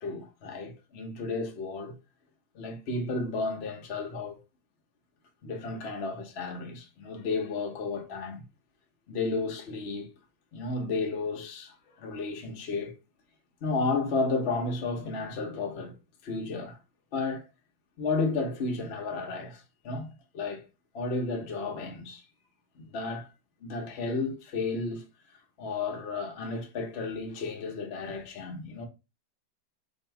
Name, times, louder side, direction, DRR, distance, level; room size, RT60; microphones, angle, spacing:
voice 1, 0.0-2.0 2.5-4.4 5.4-8.4 9.1-10.1 10.5-13.0 13.6-15.9 16.2-16.8 17.1-17.5 18.0-20.7 20.9-22.2 22.8-23.3 23.6-25.1 25.6-28.9, left 3 dB, 50° left, 0.8 m, -32 dB
2.9 x 2.7 x 4.3 m
omnidirectional pair, 1.9 m